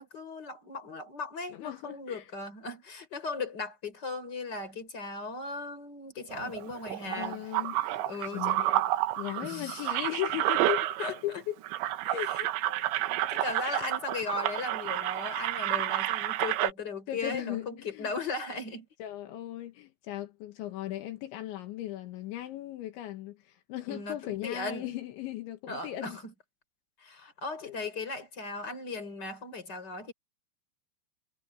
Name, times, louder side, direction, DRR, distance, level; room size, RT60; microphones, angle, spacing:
voice 1, 0.0-7.4 8.1-8.6 9.3-9.9 11.0-11.2 12.3-12.8 13.3-18.9 23.9-24.9 25.7-26.3 27.0-30.1, left 3 dB, 20° left, 5.5 m, -37 dB
voice 2, 1.5-2.3 6.4-6.5 7.1-8.0 8.3-8.9 9.2-10.9 11.2-11.6 12.0-12.4 13.3-13.5 13.8-13.9 17.1-18.1 19.0-26.2 27.6-27.8, left 14 dB, 80° left, 3.9 m, -37 dB
sound 1, 6.3-11.4 11.6-16.7, right 15 dB, 80° right, 3.4 m, -30 dB
omnidirectional pair, 5.2 m